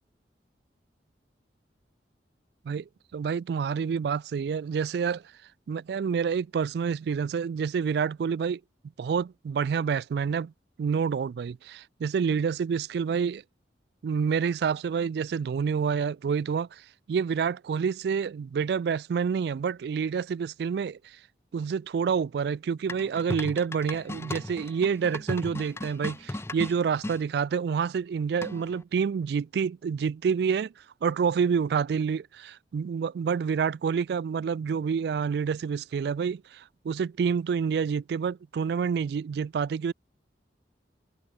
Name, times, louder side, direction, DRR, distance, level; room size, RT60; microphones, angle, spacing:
voice 1, 2.7-5.2 5.7-8.6 9.0-10.5 10.8-13.4 14.0-16.8 17.1-21.0 21.5-30.7 31.0-39.9, right 6 dB, 60° right, 0.3 m, -28 dB
sound 1, 22.9-27.2 28.4-28.8, left 1 dB, 15° left, 0.6 m, -36 dB
head